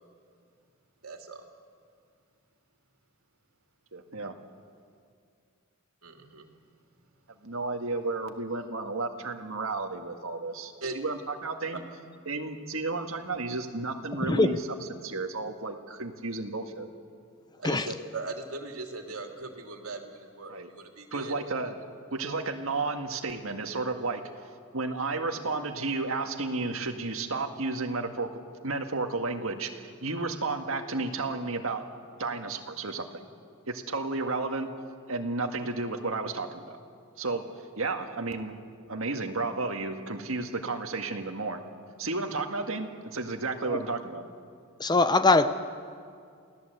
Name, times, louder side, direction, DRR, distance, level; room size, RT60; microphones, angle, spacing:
voice 1, 1.0-1.4 6.0-6.5 10.8-10.9 11.7-11.8 17.6-21.3, right 3 dB, 85° right, 3 dB, 2.8 m, -39 dB
voice 2, 3.9-4.4 7.4-11.8 12.3-14.6 14.9-16.9 20.5-20.7 21.1-21.8 22.1-24.2 24.7-31.8 32.2-33.3 33.7-34.7 35.1-36.8 37.2-37.4 37.8-38.6 38.9-41.6 42.0-44.2, right 3 dB, 70° right, 5 dB, 1.9 m, -32 dB
voice 3, 14.2-14.6 17.6-17.9 43.7-43.8 44.8-45.5, left 3 dB, 20° left, 11 dB, 0.7 m, -22 dB
28.5 x 17.0 x 8.1 m, 2.3 s
head